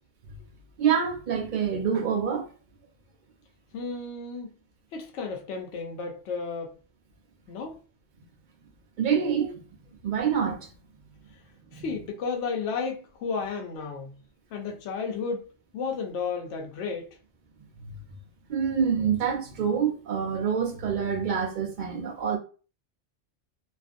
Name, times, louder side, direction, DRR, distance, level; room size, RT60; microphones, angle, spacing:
voice 1, 0.8-2.5 9.0-9.6 10.0-10.7 11.8-12.0 17.8-18.0 18.5-22.4, right 7 dB, 55° right, 0.6 m, -26 dB
voice 2, 3.7-4.5 4.9-6.8 7.5-7.8 11.7-14.1 14.5-15.5 15.7-17.1, left 5 dB, 75° left, 0.9 m, -33 dB
2.5 x 2.4 x 2.4 m
omnidirectional pair, 1.2 m